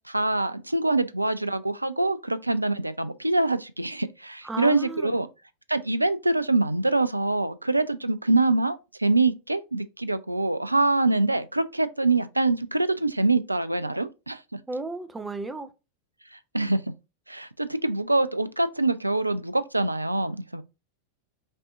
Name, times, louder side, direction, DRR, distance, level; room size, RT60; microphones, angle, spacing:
voice 1, 0.1-5.3 5.7-14.6 16.3-16.8 17.3-20.6, right 2 dB, 85° right, 0.3 m, -25 dB
voice 2, 4.4-5.2 14.7-15.7, right 2 dB, 10° right, 0.6 m, -34 dB
5.3 x 2.7 x 2.6 m
figure-of-eight pair, 90°, 0 cm